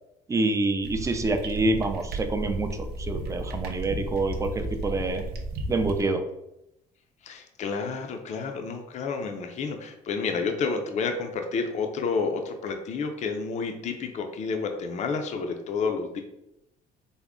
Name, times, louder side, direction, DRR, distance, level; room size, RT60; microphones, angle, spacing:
voice 1, 0.3-5.2 5.7-6.2, right 2 dB, 20° right, 7 dB, 0.4 m, -27 dB
sound 1, 0.8-6.0, right 1 dB, 70° right, 0.6 m, -34 dB
voice 2, 7.2-16.2, left 4 dB, 45° left, 4 dB, 0.4 m, -30 dB
3.5 x 2.0 x 3.6 m, 0.84 s
cardioid pair, 110°, 17 cm